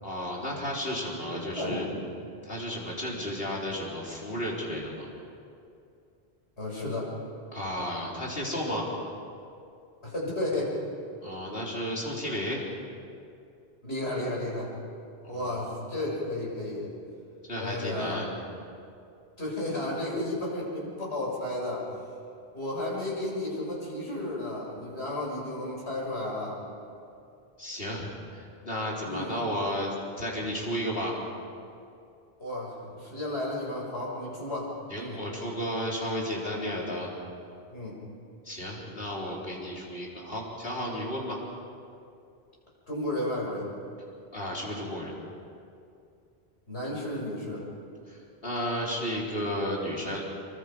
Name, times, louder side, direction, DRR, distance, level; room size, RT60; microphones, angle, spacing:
voice 1, 0.0-1.8 2.4-5.1 7.5-8.8 11.2-12.7 15.2-15.7 17.4-18.3 27.6-31.2 34.9-37.1 38.4-41.4 44.3-45.1 48.1-50.2, equal, 65° left, -4 dB, 4.4 m, -33 dB
voice 2, 1.3-2.0 6.6-7.1 10.0-10.8 13.8-14.7 15.3-16.9 17.6-18.3 19.4-21.9 22.5-26.6 29.0-29.4 32.4-35.2 37.7-38.0 42.9-43.7 46.7-47.6, left 1 dB, 85° left, -4 dB, 7.1 m, -33 dB
27.0 x 23.5 x 5.3 m, 2.5 s
omnidirectional pair, 1.1 m